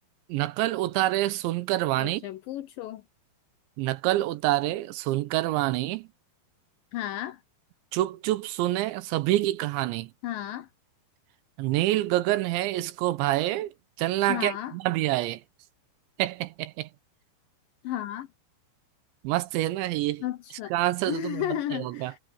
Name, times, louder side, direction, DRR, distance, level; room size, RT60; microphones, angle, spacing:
voice 1, 0.3-2.3 3.8-6.1 7.9-10.1 11.6-15.4 16.2-16.9 19.2-20.3 20.7-22.1, right 16 dB, 80° right, 3.3 m, -27 dB
voice 2, 2.0-3.0 6.9-7.4 10.2-10.7 14.3-14.7 17.8-18.3 20.2-20.7 21.1-22.2, left 12 dB, 80° left, 2.0 m, -33 dB
omnidirectional pair, 5.3 m